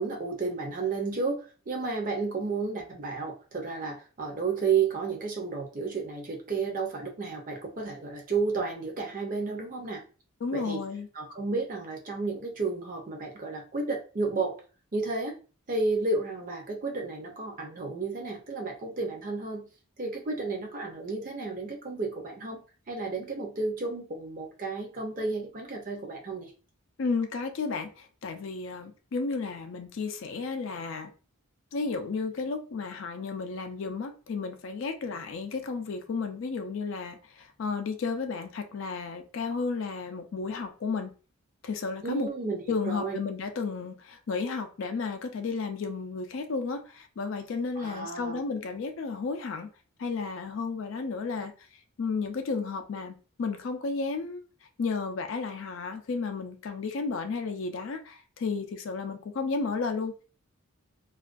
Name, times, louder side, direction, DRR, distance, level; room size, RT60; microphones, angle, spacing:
voice 1, 0.0-1.4 1.7-10.0 10.5-10.8 11.1-14.6 14.9-15.4 15.7-19.7 20.0-22.6 22.9-26.5 42.0-43.2 47.7-48.4, right 4 dB, 40° right, 0.6 m, -32 dB
voice 2, 10.4-11.1 27.0-31.1 31.7-41.1 41.6-42.3 42.7-49.7 50.0-54.4 54.8-60.1, left 4 dB, 60° left, 0.4 m, -33 dB
2.4 x 2.2 x 2.4 m
head